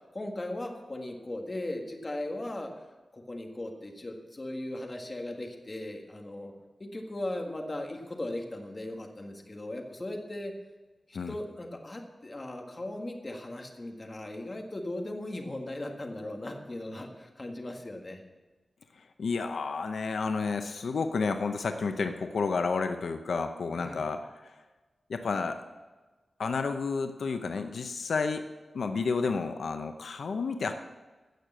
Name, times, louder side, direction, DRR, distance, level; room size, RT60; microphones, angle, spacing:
voice 1, 0.1-2.7 3.1-6.5 6.8-10.5 11.1-18.2 23.7-24.1, left 1 dB, 30° left, 2 dB, 1.7 m, -38 dB
voice 2, 19.2-24.5 25.1-25.6 26.4-28.4 28.7-30.7, left 4 dB, 85° left, 7 dB, 0.7 m, -31 dB
16.0 x 6.6 x 7.5 m, 1.2 s
wide cardioid pair, 140°, 0 cm